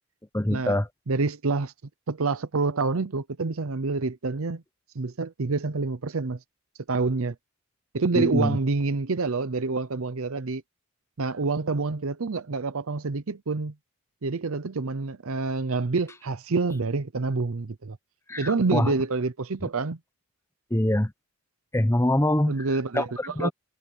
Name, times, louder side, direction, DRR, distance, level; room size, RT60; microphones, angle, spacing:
voice 1, 0.3-0.9 8.1-8.6 18.3-18.9 20.7-21.1 21.7-22.6 22.9-23.5, left 1 dB, 10° left, 0.9 m, -24 dB
voice 2, 1.1-1.7 2.1-4.6 4.9-6.4 6.9-7.3 7.9-10.6 11.2-13.7 14.2-18.0 18.4-20.0 22.5-23.5, right 3 dB, 70° right, 0.7 m, -27 dB
head